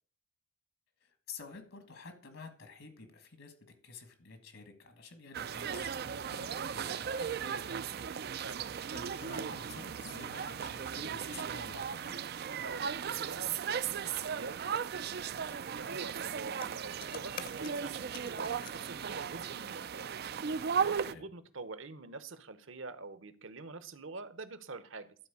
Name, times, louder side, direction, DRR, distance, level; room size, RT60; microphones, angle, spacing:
voice 1, 1.0-3.5 3.8-8.1 8.9-12.2 21.0-21.2, left 4 dB, 65° left, 7 dB, 1.6 m, -50 dB
sound 1, 5.3-21.1, right 7 dB, 45° right, 0.4 m, -37 dB
voice 2, 12.6-25.2, right 3 dB, 60° right, 13 dB, 0.9 m, -46 dB
sound 2, 16.5-18.8, left 6 dB, 40° left, 0.8 m, -47 dB
12.0 x 4.4 x 7.0 m, 0.43 s
head